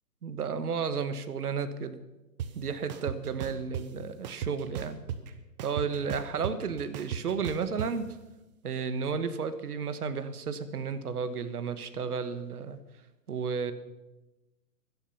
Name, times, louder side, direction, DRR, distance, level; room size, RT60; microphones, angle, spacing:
voice 1, 0.2-2.0 2.5-5.0 5.6-8.1 8.6-12.8 13.3-13.7, right 6 dB, 65° right, 11 dB, 1.5 m, -33 dB
sound 1, 2.4-2.5 2.9-3.8 4.2-5.3 5.6-7.9, right 8 dB, 25° right, 0.9 m, -35 dB
16.5 x 11.5 x 5.7 m, 1.1 s
figure-of-eight pair, 135°, 49 cm